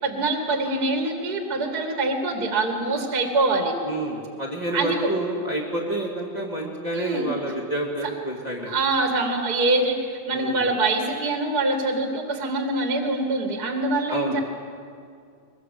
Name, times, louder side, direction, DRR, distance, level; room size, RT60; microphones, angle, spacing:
voice 1, 0.0-3.7 4.7-5.1 6.9-7.3 8.7-14.4, right 2 dB, 35° right, 3 dB, 1.7 m, -24 dB
voice 2, 3.8-8.7 10.3-10.6 14.1-14.4, right 1 dB, 10° right, -5 dB, 1.1 m, -29 dB
22.5 x 22.0 x 7.8 m, 2.3 s
omnidirectional pair, 5.1 m